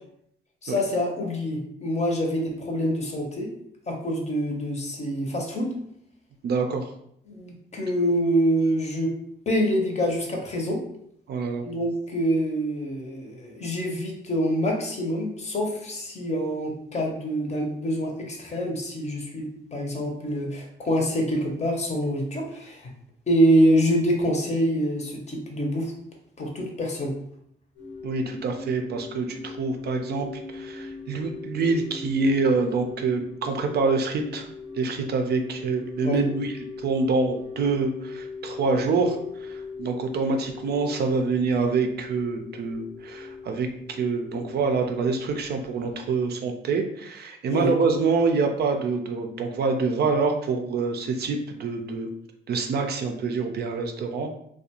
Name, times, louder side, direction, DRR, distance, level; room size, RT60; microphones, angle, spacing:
voice 1, 0.6-3.5 3.9-5.7 7.3-9.1 9.5-10.8 11.6-22.9 23.3-25.9 26.4-27.1 36.0-36.2 47.5-47.8, equal, 35° left, 1 dB, 0.7 m, -25 dB
voice 2, 6.4-6.9 11.3-11.6 28.0-30.3 30.5-34.5 34.7-36.6 36.8-52.1 52.5-54.3, right 4 dB, 55° right, 5 dB, 0.4 m, -26 dB
sound 1, 27.8-46.2, left 4 dB, 65° left, 0.8 m, -40 dB
2.4 x 2.2 x 2.8 m, 0.72 s
cardioid pair, 90°, 20 cm